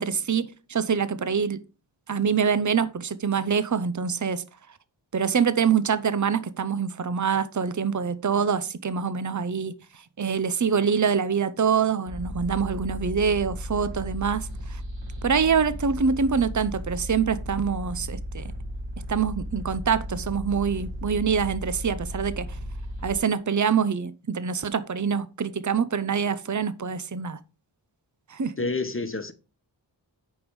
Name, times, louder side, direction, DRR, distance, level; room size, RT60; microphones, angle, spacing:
voice 1, 0.0-1.6 2.1-4.4 5.1-9.7 10.2-14.8 15.2-18.5 19.0-22.5 23.0-27.4 28.3-28.5, right 6 dB, 40° right, 0.8 m, -25 dB
sound 1, 12.1-23.2, equal, 80° right, 3.6 m, -35 dB
voice 2, 28.6-29.3, left 3 dB, 30° left, 1.1 m, -28 dB
8.6 x 5.4 x 4.7 m
wide cardioid pair, 50°, 44 cm